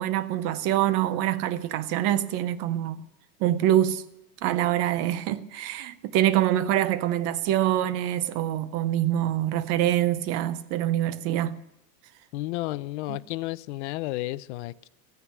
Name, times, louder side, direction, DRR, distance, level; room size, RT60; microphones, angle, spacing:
voice 1, 0.0-3.0 3.4-4.0 4.4-11.6 13.1-13.2, right 12 dB, 35° right, 0.6 m, -25 dB
voice 2, 12.3-14.9, left 18 dB, 50° left, 0.6 m, -32 dB
14.5 x 9.4 x 9.4 m
supercardioid pair, 165°, 44 cm